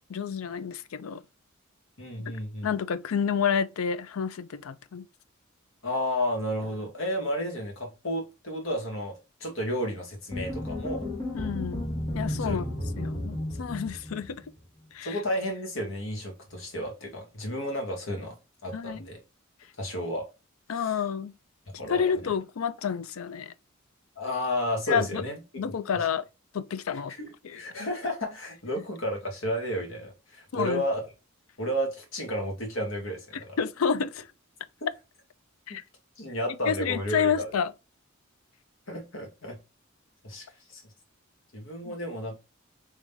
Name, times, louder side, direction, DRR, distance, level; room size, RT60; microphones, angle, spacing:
voice 1, 0.1-1.2 2.3-2.4 2.6-5.0 11.3-11.8 12.1-12.6 12.9-14.4 14.9-15.2 18.7-19.1 20.7-21.3 21.9-23.5 24.9-25.3 25.6-26.2 26.5-27.1 27.4-27.9 30.5-30.8 33.3-34.3 35.7-35.8 36.7-37.7 41.8-41.9, left 7 dB, 85° left, 0.4 m, -29 dB
voice 2, 2.0-2.7 5.8-9.1 9.4-11.1 12.4-12.7 15.0-18.3 18.6-19.2 19.8-20.3 20.8-21.0 21.8-22.0 24.2-25.4 25.9-26.1 27.2-31.0 31.6-33.5 35.7-35.8 36.2-37.5 38.9-39.6 40.2-40.8 41.5-42.4, equal, 70° left, 1.6 m, -32 dB
sound 1, 10.3-14.6, left 1 dB, 15° left, 1.4 m, -33 dB
3.7 x 3.1 x 3.4 m
head